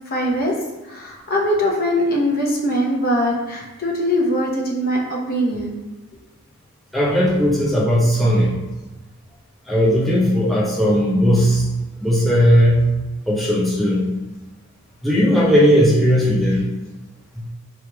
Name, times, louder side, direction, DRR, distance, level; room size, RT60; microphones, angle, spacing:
voice 1, 0.1-0.5 0.9-5.8, equal, 40° left, -1 dB, 0.8 m, -21 dB
voice 2, 6.9-8.5 9.7-11.6 12.0-12.9 13.3-14.1 15.0-16.7 17.4-17.5, equal, ahead, -6 dB, 0.5 m, -17 dB
3.3 x 2.9 x 4.5 m, 1.1 s
head